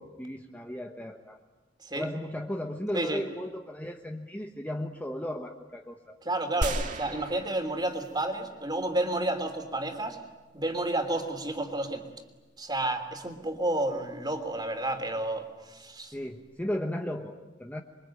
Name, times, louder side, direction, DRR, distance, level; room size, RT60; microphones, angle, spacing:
voice 1, 0.0-1.4 1.9-6.2 16.1-17.8, left 1 dB, 10° left, 3 dB, 1.2 m, -35 dB
voice 2, 6.2-10.2 10.5-12.0 12.6-16.1, right 1 dB, 25° right, 6 dB, 3.2 m, -31 dB
sound 1, 6.6-8.4 8.9-9.0, right 1 dB, 45° right, 2.1 m, -34 dB
27.5 x 23.5 x 9.1 m, 1.2 s
head